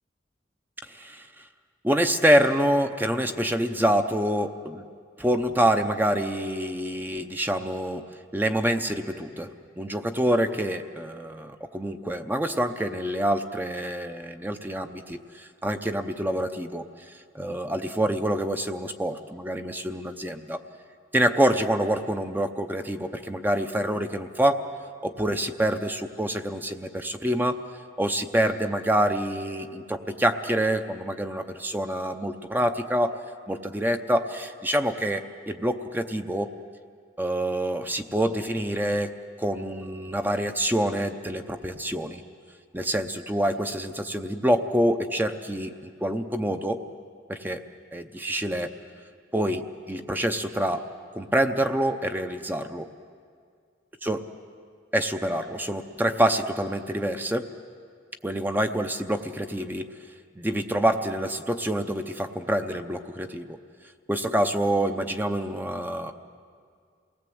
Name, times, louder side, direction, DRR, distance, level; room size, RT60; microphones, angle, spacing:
voice 1, 0.8-1.4 1.8-4.9 5.2-8.1 8.3-9.5 9.8-20.6 21.1-24.6 25.0-27.6 28.0-33.2 33.5-36.5 37.2-42.2 42.7-46.8 47.3-47.6 47.9-48.7 49.3-52.9 54.0-54.2 54.9-57.5 58.2-59.9 60.3-63.6 64.1-66.1, right 1 dB, 10° right, 7 dB, 0.7 m, -26 dB
28.0 x 19.0 x 7.8 m, 2.2 s
head